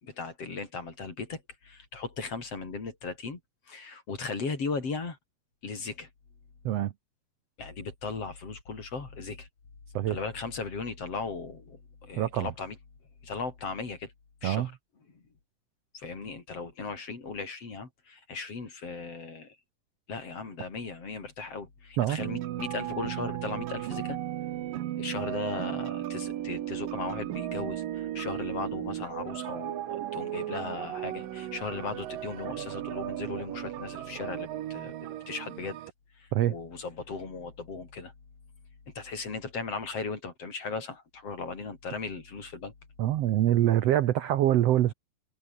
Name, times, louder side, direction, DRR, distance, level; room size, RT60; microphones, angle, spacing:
voice 1, 0.0-3.4 3.7-5.2 5.6-6.1 7.6-9.5 10.1-12.8 13.2-14.1 14.4-14.7 15.1-15.2 15.9-19.6 20.1-24.2 25.0-35.8 36.2-38.1 39.0-42.7, left 4 dB, 45° left, 5.3 m, -37 dB
voice 2, 12.2-12.5 14.4-14.7 22.0-22.2 36.3-36.5 43.0-44.9, right 13 dB, 70° right, 1.6 m, -24 dB
Trap Melody, 22.2-35.9, right 13 dB, 85° right, 3.0 m, -35 dB
omnidirectional pair, 3.9 m